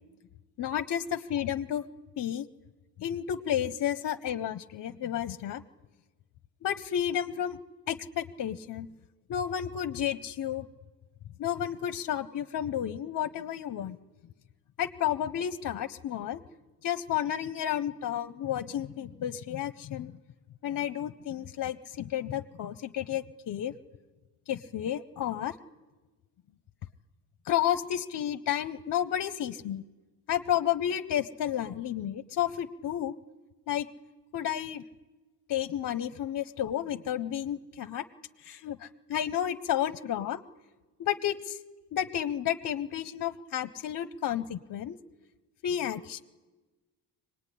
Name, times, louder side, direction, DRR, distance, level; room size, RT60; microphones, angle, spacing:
voice 1, 0.6-1.8 2.2-2.5 3.0-5.6 6.6-7.6 7.9-8.9 9.3-10.7 11.4-14.0 14.8-16.4 16.8-20.1 20.6-23.7 24.5-25.5 27.4-29.8 30.3-33.2 33.7-33.9 34.3-34.8 35.5-38.0 38.4-40.4 41.0-41.6 41.9-45.0 45.6-46.2, left 10 dB, 50° left, 12 dB, 0.7 m, -31 dB
24.0 x 19.5 x 10.0 m, 1.2 s
cardioid pair, 135°, 41 cm